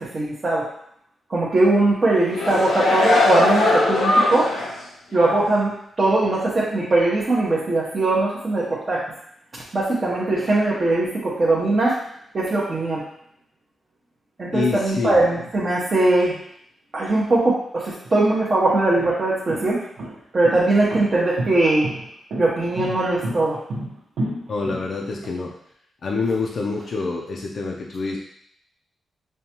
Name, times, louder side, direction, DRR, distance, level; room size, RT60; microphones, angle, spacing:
voice 1, 0.1-0.6 1.3-4.5 5.1-5.7 6.0-9.0 9.7-12.0 12.3-13.0 14.4-16.4 16.9-19.8 20.3-21.8 22.4-23.6, right 2 dB, 30° right, -7 dB, 0.8 m, -20 dB
sound 1, 2.1-4.8 5.2-5.4, left 2 dB, 90° left, 0.8 m, -20 dB
voice 2, 14.5-15.2 24.5-25.5 26.0-28.2, left 4 dB, 50° left, -1 dB, 0.5 m, -26 dB
sound 2, 18.0-18.1 18.8-25.3, right 1 dB, 80° right, 0.9 m, -31 dB
5.3 x 2.2 x 2.9 m, 0.70 s
wide cardioid pair, 150°, 0 cm